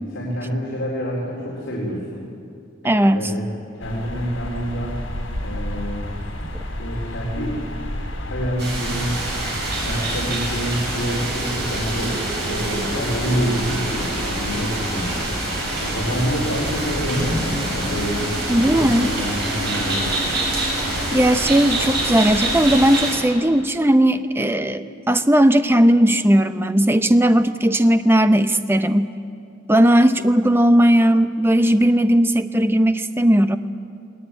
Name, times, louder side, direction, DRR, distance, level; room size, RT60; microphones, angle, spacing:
voice 1, 0.1-2.2 3.1-3.5 3.7-4.9 5.4-6.1 6.8-7.6 8.1-9.1 9.8-12.2 12.5-15.2 15.8-18.4 18.7-20.1, equal, 65° left, -5 dB, 4.1 m, -27 dB
voice 2, 2.8-3.3 18.5-19.1 21.1-29.1 29.7-33.6, right 1 dB, 10° right, 10 dB, 0.6 m, -17 dB
sound 1, 3.8-22.9, left 1 dB, 85° left, 4.2 m, -32 dB
sound 2, 8.6-23.2, right 2 dB, 55° right, 6.9 m, -26 dB
20.5 x 19.5 x 9.0 m, 2.5 s
head